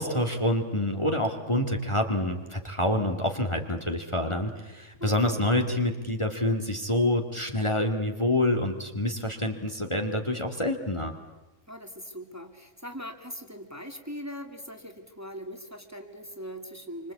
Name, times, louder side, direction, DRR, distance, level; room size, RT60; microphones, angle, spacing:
voice 1, 0.0-11.1, left 1 dB, 20° left, 4 dB, 2.0 m, -27 dB
voice 2, 5.0-5.4 11.7-17.1, equal, 10° right, 4 dB, 2.3 m, -41 dB
27.5 x 25.5 x 8.5 m, 1.1 s
omnidirectional pair, 1.4 m